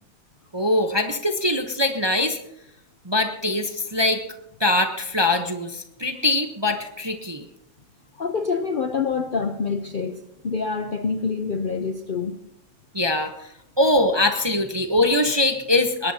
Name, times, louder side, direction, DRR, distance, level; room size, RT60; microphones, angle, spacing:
voice 1, 0.5-2.4 3.0-4.2 4.6-7.5 12.9-13.3 13.8-16.1, left 2 dB, 25° right, 5 dB, 0.7 m, -22 dB
voice 2, 8.2-12.4, left 5 dB, 50° left, 7 dB, 0.6 m, -26 dB
21.0 x 18.5 x 2.8 m, 0.81 s
omnidirectional pair, 1.7 m